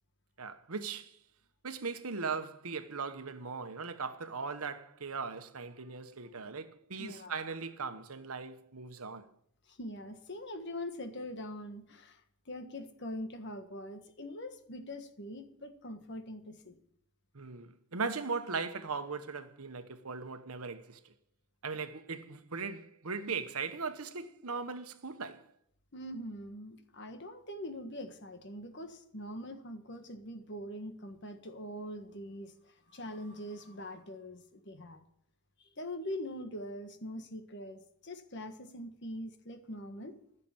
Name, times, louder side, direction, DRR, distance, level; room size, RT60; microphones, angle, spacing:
voice 1, 0.4-1.2 1.6-9.3 17.3-21.1 21.6-25.5, right 4 dB, 80° right, 1.1 m, -39 dB
voice 2, 7.0-7.3 9.7-12.2 12.5-16.8 25.9-35.0 35.8-40.2, left 1 dB, 50° left, 1.5 m, -43 dB
15.0 x 6.8 x 8.8 m
head